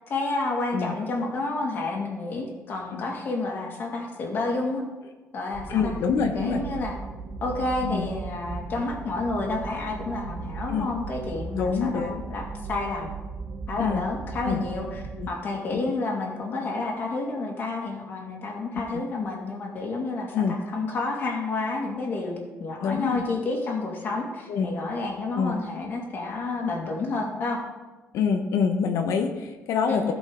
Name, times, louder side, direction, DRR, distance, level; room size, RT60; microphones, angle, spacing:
voice 1, 0.1-4.8 5.3-5.9 6.3-7.0 7.4-12.4 12.7-13.1 13.7-27.6 29.9-30.1, left 3 dB, 40° left, 0 dB, 2.0 m, -30 dB
sound 1, 5.5-15.3, right 4 dB, 55° right, 0.9 m, -37 dB
voice 2, 5.7-6.6 7.8-8.1 10.7-10.9 11.6-12.2 13.8-14.0 14.4-14.6 15.2-15.3 15.7-15.8 20.3-20.5 22.8-23.2 24.5-24.7 25.3-25.6 28.1-30.1, left 6 dB, 85° left, 4 dB, 0.9 m, -26 dB
15.5 x 5.3 x 3.7 m, 1.2 s
cardioid pair, 175°, 5 cm